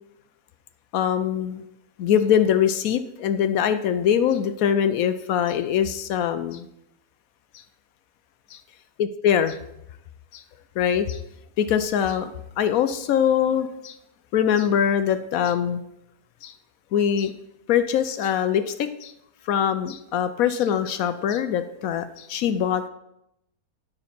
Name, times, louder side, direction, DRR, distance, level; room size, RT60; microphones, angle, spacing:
voice 1, 0.9-1.6 2.0-6.7 8.5-8.6 9.0-9.6 10.3-10.4 10.8-11.2 11.6-12.3 12.6-14.0 14.3-15.8 16.4-16.5 16.9-17.3 17.7-19.1 19.5-22.9, left 9 dB, 70° left, 11 dB, 0.9 m, -23 dB
9.8 x 6.4 x 4.3 m, 0.81 s
omnidirectional pair, 1.7 m